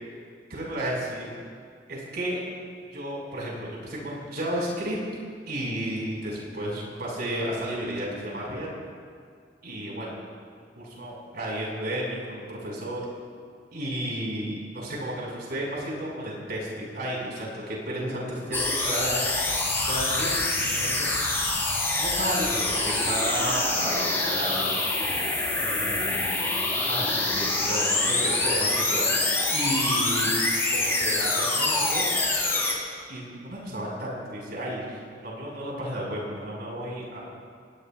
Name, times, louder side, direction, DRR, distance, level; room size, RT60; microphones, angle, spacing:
voice 1, 0.5-1.3 1.9-2.4 2.9-5.0 5.5-8.7 9.6-10.2 10.5-13.1 13.7-19.4 19.8-21.1 21.9-24.8 25.6-26.4 26.9-30.3 30.7-32.1 33.1-37.2, right 1 dB, 60° right, -3 dB, 5.5 m, -32 dB
sound 1, 18.5-32.7, left 2 dB, 15° left, 3.6 m, -25 dB
28.0 x 19.5 x 2.5 m, 2.1 s
head